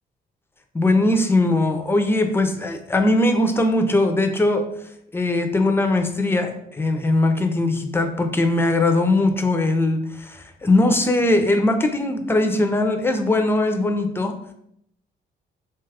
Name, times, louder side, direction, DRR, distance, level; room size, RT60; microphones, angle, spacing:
voice 1, 0.7-4.6 5.1-14.3, left 2 dB, 10° left, 6 dB, 0.4 m, -20 dB
2.8 x 2.3 x 3.3 m, 0.71 s
cardioid pair, 90°, 20 cm